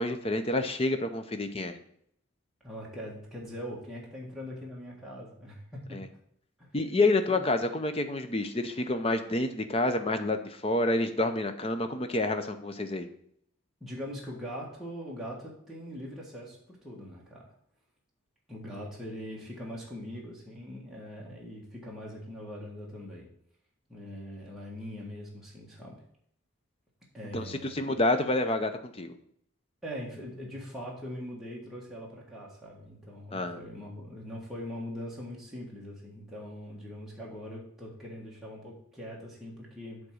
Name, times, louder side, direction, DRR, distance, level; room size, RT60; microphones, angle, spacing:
voice 1, 0.0-1.8 5.9-6.1 6.7-13.1 27.3-29.2 33.3-33.6, left 2 dB, 25° left, 8 dB, 0.6 m, -28 dB
voice 2, 2.6-6.0 6.6-6.7 7.3-7.4 13.8-17.4 18.5-23.3 23.9-26.0 27.1-27.9 29.8-40.0, equal, ahead, -5 dB, 1.6 m, -42 dB
7.9 x 3.6 x 6.3 m, 0.70 s
head